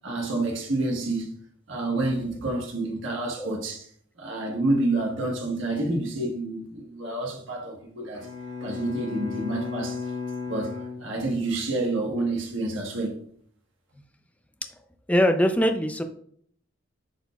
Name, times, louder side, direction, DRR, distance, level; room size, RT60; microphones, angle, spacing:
voice 1, 0.0-1.3 1.7-3.8 4.2-8.3 8.6-10.0 10.5-10.7 11.0-13.2, right 2 dB, 85° right, 1.4 m, -28 dB
Bowed string instrument, 8.1-11.7, left 5 dB, 70° left, 1.8 m, -35 dB
voice 2, 15.1-16.0, equal, 5° left, 0.5 m, -22 dB
10.5 x 4.3 x 2.3 m
head